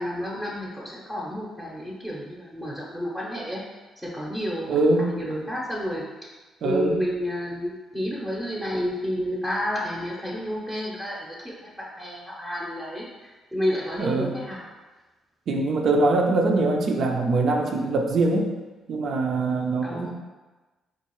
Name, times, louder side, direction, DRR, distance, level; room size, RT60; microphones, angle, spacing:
voice 1, 0.0-3.6 4.0-4.7 5.0-6.0 6.6-13.0 13.5-14.7 19.8-20.1, equal, 10° right, -5 dB, 0.7 m, -30 dB
voice 2, 4.7-5.5 6.6-7.0 14.0-14.3 15.5-18.5 18.9-20.1, right 2 dB, 60° right, 2 dB, 0.5 m, -23 dB
4.5 x 2.4 x 3.0 m, 1.2 s
cardioid pair, 90°, 0 cm